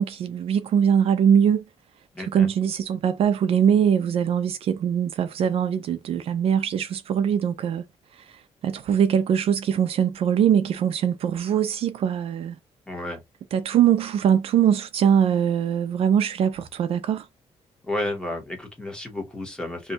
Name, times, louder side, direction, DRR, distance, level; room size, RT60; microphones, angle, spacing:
voice 1, 0.0-1.6 2.2-7.8 8.1-12.6 13.5-17.3, right 8 dB, 60° right, 0.4 m, -22 dB
voice 2, 2.1-2.5 12.9-13.2 17.8-19.9, left 1 dB, 5° left, 1.0 m, -31 dB
2.6 x 2.2 x 3.9 m
cardioid pair, 155°, 11 cm